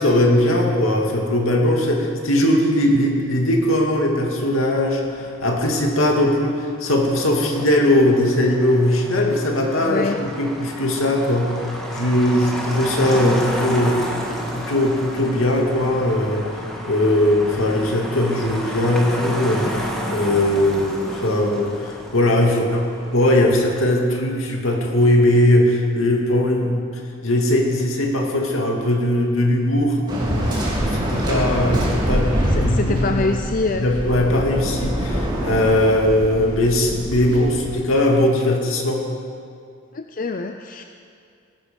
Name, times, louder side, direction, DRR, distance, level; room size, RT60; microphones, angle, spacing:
voice 1, 0.0-10.1 10.4-14.0 14.5-16.5 16.8-22.8 23.1-26.9 27.2-30.0 30.5-33.3 33.8-39.1, left 1 dB, 75° left, 1 dB, 2.3 m, -19 dB
Motor vehicle (road), 5.0-23.8, equal, ahead, 1.7 m, -32 dB
voice 2, 9.8-10.2 32.5-33.9 39.9-40.8, left 3 dB, 40° left, 6 dB, 0.5 m, -25 dB
Waves surf, 30.1-37.7, equal, 20° right, 3.0 m, -24 dB
19.0 x 11.5 x 5.3 m, 2.3 s
head